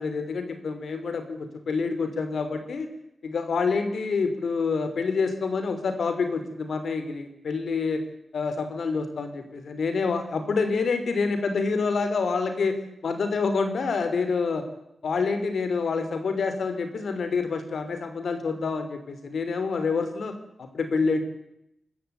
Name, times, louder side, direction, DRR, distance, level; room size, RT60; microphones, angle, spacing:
voice 1, 0.0-2.9 3.2-8.0 8.3-12.8 13.0-14.6 15.0-21.2, left 4 dB, 75° left, 8 dB, 3.1 m, -27 dB
24.5 x 14.5 x 9.1 m, 0.82 s
wide cardioid pair, 105°, 0 cm